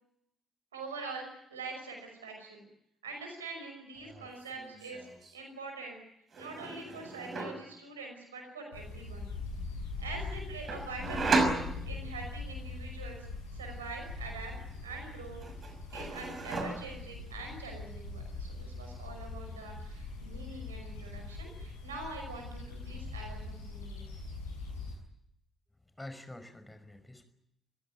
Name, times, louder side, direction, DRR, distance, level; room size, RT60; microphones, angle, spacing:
voice 1, 0.7-2.6 3.0-5.1 5.3-6.0 6.4-9.3 10.0-11.6 11.9-13.3 13.5-14.5 14.8-15.4 15.9-24.0, right 3 dB, 80° right, 3 dB, 5.5 m, -44 dB
sound 1, 4.0-4.3 4.5-5.3 6.3-7.7 10.7-12.3 14.5-15.1 15.4-17.1, right 3 dB, 45° right, 6.0 m, -34 dB
sound 2, 8.7-24.9, left 3 dB, 80° left, 6.7 m, -42 dB
voice 2, 26.0-27.2, left 1 dB, 10° left, 9 dB, 5.4 m, -47 dB
29.0 x 16.0 x 9.5 m, 0.79 s
figure-of-eight pair, 45°, 0 cm